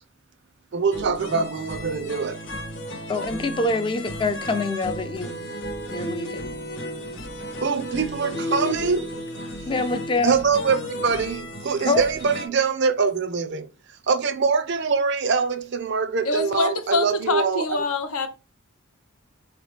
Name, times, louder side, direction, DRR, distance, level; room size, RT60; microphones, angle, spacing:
voice 1, 0.7-2.4 7.6-9.1 10.2-13.7 14.1-17.7, right 5 dB, 50° right, 0.4 m, -24 dB
sound 1, 0.9-12.5, equal, 55° left, 1.0 m, -34 dB
voice 2, 3.1-5.5 5.9-6.5 9.7-10.4 11.9-12.1, left 3 dB, 20° left, 0.4 m, -25 dB
voice 3, 8.5-8.9 16.2-18.3, left 3 dB, 90° left, 0.8 m, -25 dB
4.6 x 2.9 x 3.2 m
head